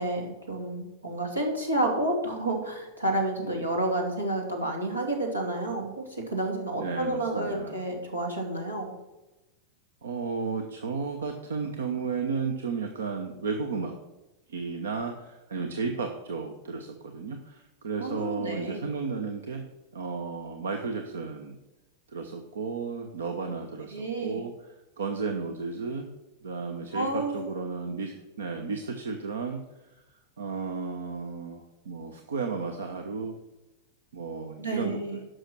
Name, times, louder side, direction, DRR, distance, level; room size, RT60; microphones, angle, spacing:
voice 1, 0.0-8.9 18.0-18.9 23.9-24.4 26.9-27.5 34.6-35.2, right 1 dB, 85° right, 1 dB, 2.7 m, -30 dB
voice 2, 6.8-7.8 10.0-13.9 14.5-19.6 19.9-21.6 22.1-24.5 25.0-26.1 26.4-29.6 30.4-33.3 34.1-35.2, right 5 dB, 65° right, 6 dB, 1.0 m, -33 dB
11.5 x 6.3 x 6.1 m, 1.0 s
figure-of-eight pair, 90°, 0 cm